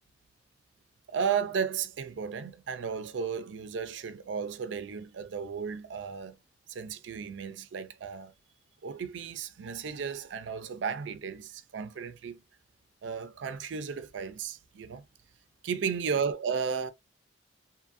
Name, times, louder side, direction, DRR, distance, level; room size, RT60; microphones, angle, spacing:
voice 1, 1.1-6.4 6.7-8.3 8.8-12.4 13.0-15.0 15.6-16.9, right 6 dB, 80° right, 0.4 m, -34 dB
2.7 x 2.5 x 2.4 m
head